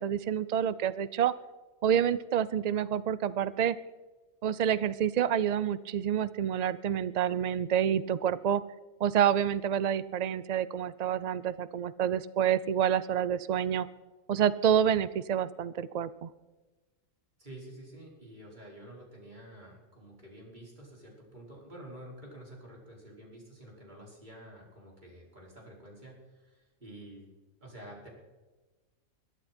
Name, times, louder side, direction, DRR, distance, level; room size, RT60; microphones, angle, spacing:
voice 1, 0.0-1.3 1.8-3.8 4.4-8.6 9.0-13.9 14.3-16.3, right 9 dB, 75° right, 16 dB, 0.3 m, -28 dB
voice 2, 17.4-27.3 27.6-28.1, right 1 dB, 35° right, -3 dB, 5.5 m, -49 dB
22.5 x 11.5 x 4.4 m, 1.2 s
omnidirectional pair, 1.4 m